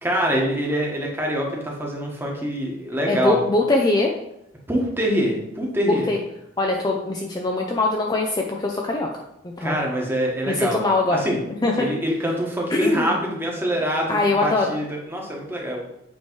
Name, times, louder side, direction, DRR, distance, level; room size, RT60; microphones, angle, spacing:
voice 1, 0.0-3.4 4.7-6.1 9.6-10.8 11.1-11.4 11.8-15.8, equal, 10° right, -2 dB, 1.2 m, -25 dB
voice 2, 3.1-4.1 6.1-6.2 6.6-9.1 9.4-9.8 10.5-11.2 11.6-11.9 12.7-13.1 14.1-14.7, left 2 dB, 20° left, 0 dB, 0.5 m, -22 dB
8.3 x 3.1 x 4.5 m, 0.84 s
head